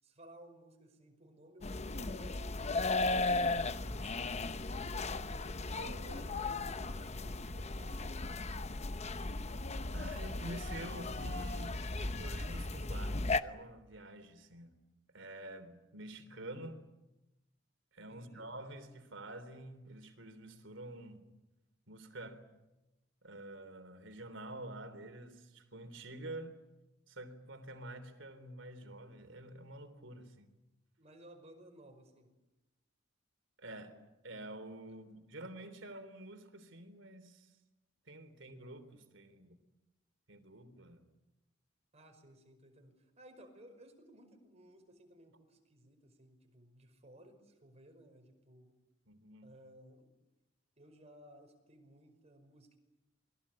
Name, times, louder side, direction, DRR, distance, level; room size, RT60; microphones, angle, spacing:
voice 1, 0.0-3.3 6.1-8.5 18.1-18.5 31.0-32.3 34.9-35.0 41.9-48.8 49.4-50.2 50.8-52.8, right 1 dB, 35° right, 5.4 m, -58 dB
sound 1, 1.6-13.4, left 2 dB, 35° left, 0.9 m, -36 dB
voice 2, 3.9-4.4 4.8-5.2 5.7-6.2 9.9-11.9 12.2-14.8 15.1-16.8 17.9-21.3 21.9-22.4 23.2-26.6 27.1-30.6 33.6-34.0 34.2-37.6 38.1-39.6 40.3-41.1 49.1-49.5, right 1 dB, 70° right, 3.5 m, -48 dB
28.5 x 22.0 x 8.7 m
head